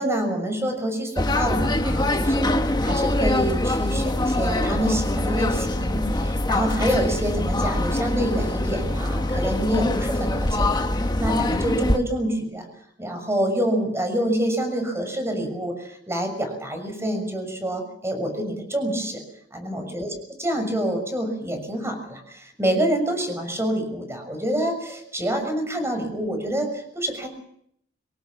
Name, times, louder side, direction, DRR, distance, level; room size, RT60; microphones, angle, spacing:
voice 1, 0.0-2.4 2.8-10.9 11.2-12.7 13.0-19.2 19.5-20.1 20.4-27.3, right 1 dB, 15° right, 6 dB, 6.6 m, -27 dB
sound 1, 1.2-12.0, left 1 dB, 25° left, 1.5 m, -23 dB
25.5 x 18.5 x 7.3 m, 0.68 s
head